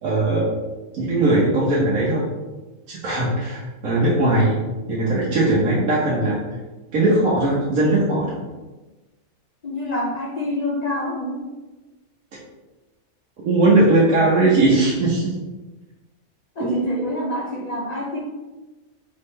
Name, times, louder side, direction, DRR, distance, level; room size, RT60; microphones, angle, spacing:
voice 1, 0.0-0.5 1.0-2.3 2.9-4.6 4.9-6.4 6.9-8.4 13.4-15.3 16.6-16.9, right 2 dB, 70° right, -7 dB, 1.3 m, -19 dB
voice 2, 9.6-11.4 16.6-18.2, left 1 dB, 70° left, -1 dB, 0.3 m, -27 dB
4.2 x 3.7 x 3.2 m, 1.2 s
omnidirectional pair, 1.5 m